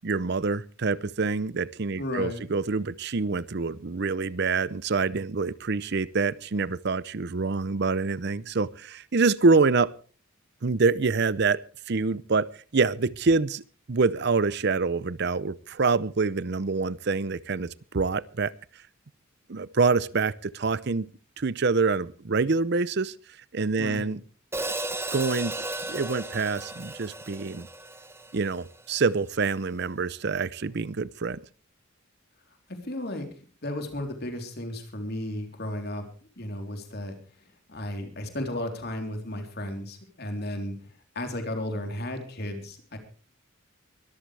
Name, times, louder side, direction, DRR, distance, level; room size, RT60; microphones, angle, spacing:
voice 1, 0.0-9.9 10.6-11.6 11.9-13.6 13.9-18.5 19.5-21.1 21.4-23.2 23.5-24.2 25.1-25.5 25.8-27.7 28.3-31.4, right 4 dB, 50° right, 19 dB, 0.6 m, -26 dB
voice 2, 2.0-2.4 23.8-24.1 32.7-33.3 33.6-36.0 36.4-37.2 37.7-40.7 41.2-43.0, left 1 dB, 50° left, 5 dB, 3.7 m, -34 dB
Hi-hat, 24.5-28.8, right 2 dB, 10° right, 1.2 m, -35 dB
23.0 x 13.5 x 3.3 m, 0.38 s
head